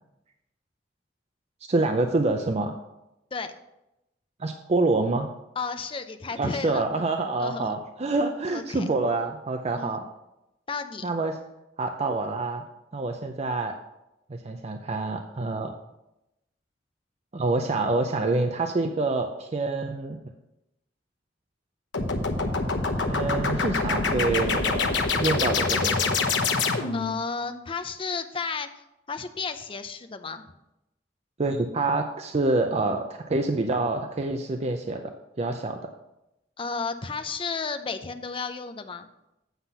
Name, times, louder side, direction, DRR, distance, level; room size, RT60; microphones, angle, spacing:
voice 1, 1.7-2.7 4.4-5.3 6.4-10.1 11.0-11.4 11.8-12.6 12.9-13.7 14.3-15.7 17.3-20.2 23.1-26.1 31.4-35.1 35.4-35.8, right 3 dB, 35° right, 5 dB, 0.5 m, -27 dB
voice 2, 5.6-6.8 7.4-7.8 8.5-8.9 9.8-10.0 10.7-11.0 26.9-28.7 29.1-30.5 36.6-39.1, left 4 dB, 30° left, 9 dB, 0.6 m, -33 dB
sound 1, 21.9-27.1, left 4 dB, 80° left, 1.0 m, -25 dB
8.1 x 5.9 x 5.5 m, 0.90 s
head